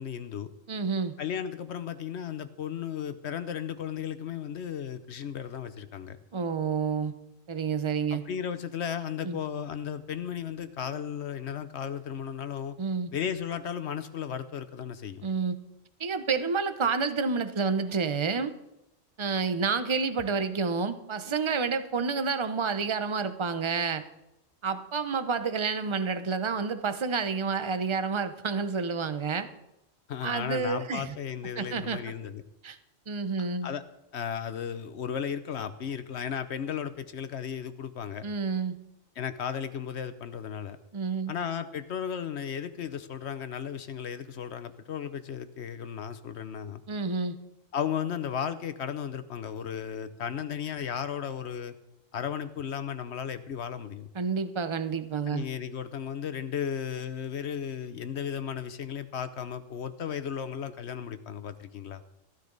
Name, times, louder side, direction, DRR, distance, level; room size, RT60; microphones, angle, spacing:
voice 1, 0.0-0.5 1.2-6.2 8.1-12.8 13.1-15.2 30.1-32.4 33.4-33.8 34.1-38.3 39.2-40.8 41.3-46.8 47.7-51.7 52.1-54.1 55.3-62.0, left 8 dB, 60° left, 12 dB, 0.9 m, -35 dB
voice 2, 0.7-1.2 6.3-7.1 7.5-8.2 9.2-9.4 12.8-13.1 15.2-15.6 16.0-18.5 19.2-24.0 24.6-29.5 30.2-31.1 31.6-32.0 32.6-32.8 33.1-33.7 38.2-38.8 40.9-41.3 46.9-47.4 54.1-55.4, right 5 dB, 30° right, 11 dB, 0.6 m, -29 dB
14.5 x 13.5 x 4.0 m, 0.88 s
omnidirectional pair, 1.4 m